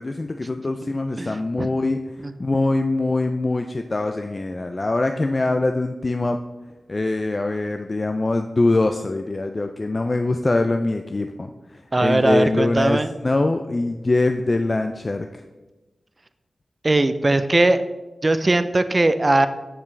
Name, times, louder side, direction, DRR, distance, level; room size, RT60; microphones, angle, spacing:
voice 1, 0.0-6.4 6.9-15.4, left 2 dB, 40° left, 6 dB, 0.3 m, -23 dB
voice 2, 1.2-1.7 2.2-2.3 11.9-13.1 16.8-17.8 18.2-19.5, right 2 dB, 35° right, 11 dB, 0.4 m, -19 dB
6.8 x 5.7 x 3.2 m, 1.1 s
cardioid pair, 55°, 0 cm